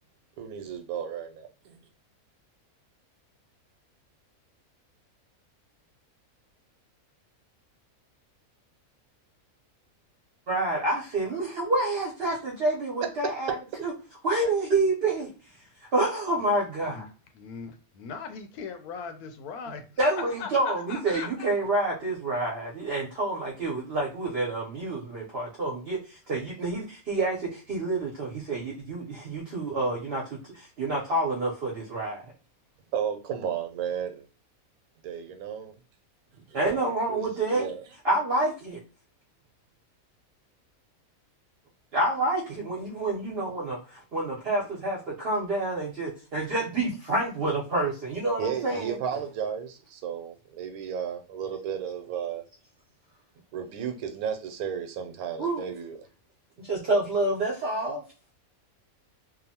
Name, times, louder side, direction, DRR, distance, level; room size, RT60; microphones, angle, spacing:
voice 1, 0.4-1.8 13.2-13.3 32.9-34.3 35.0-35.7 36.5-37.8 48.4-52.4 53.5-56.0, right 8 dB, 85° right, 1.1 m, -33 dB
voice 2, 10.5-13.9 14.2-15.3 15.9-17.1 20.0-32.2 36.5-37.7 38.0-38.8 41.9-49.0 55.4-55.6 56.6-58.0, right 2 dB, 50° right, 0.8 m, -28 dB
voice 3, 17.3-19.8 20.2-21.5, left 6 dB, 85° left, 1.1 m, -39 dB
2.8 x 2.1 x 2.7 m
omnidirectional pair, 1.5 m